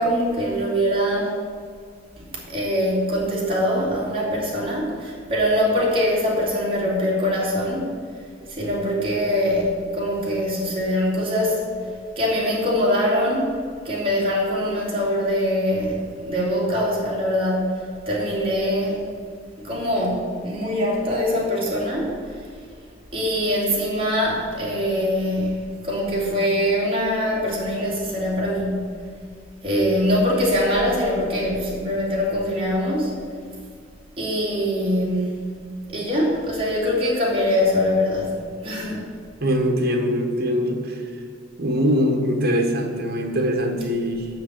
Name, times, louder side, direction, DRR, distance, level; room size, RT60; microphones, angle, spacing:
voice 1, 0.0-1.3 2.2-7.9 8.5-11.6 12.2-19.0 19.6-22.4 23.1-25.5 25.8-28.7 29.6-33.1 34.2-35.3 35.9-38.3 38.6-39.1, equal, 30° right, -5 dB, 2.7 m, -23 dB
voice 2, 39.4-41.0 41.6-44.3, equal, 55° right, 3 dB, 1.3 m, -22 dB
7.7 x 5.9 x 7.6 m, 2.1 s
head